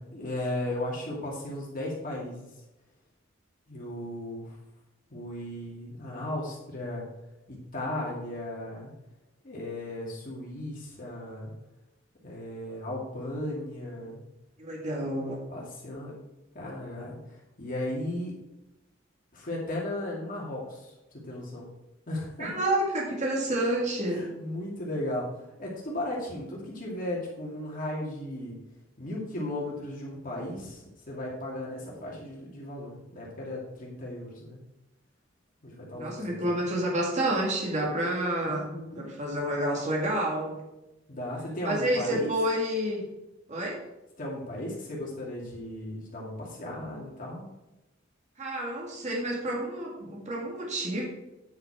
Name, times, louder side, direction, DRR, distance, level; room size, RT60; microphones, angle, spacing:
voice 1, 0.0-2.4 3.7-4.6 5.1-7.1 7.5-8.9 9.4-11.5 12.2-14.2 15.5-16.2 16.5-18.4 19.3-20.9 21.2-21.7 22.1-22.6 24.0-28.6 29.0-34.6 35.6-36.5 38.4-39.1 41.1-42.3 44.2-47.5, left 1 dB, 45° left, -4 dB, 2.4 m, -36 dB
voice 2, 14.6-15.4 22.4-24.2 36.0-40.6 41.6-43.1 43.5-43.7 48.4-51.1, right 1 dB, 35° right, -2 dB, 2.1 m, -29 dB
9.4 x 5.8 x 4.8 m, 0.97 s
head